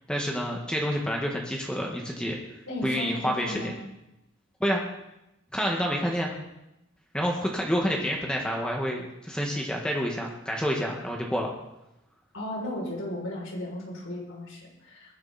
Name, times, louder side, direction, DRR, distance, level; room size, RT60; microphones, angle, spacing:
voice 1, 0.1-3.7 4.6-4.8 5.5-6.3 7.1-11.5, equal, 5° left, 0 dB, 1.7 m, -28 dB
voice 2, 2.7-3.7 12.3-15.1, left 1 dB, 90° left, -3 dB, 6.6 m, -35 dB
21.5 x 11.0 x 4.3 m, 0.90 s
head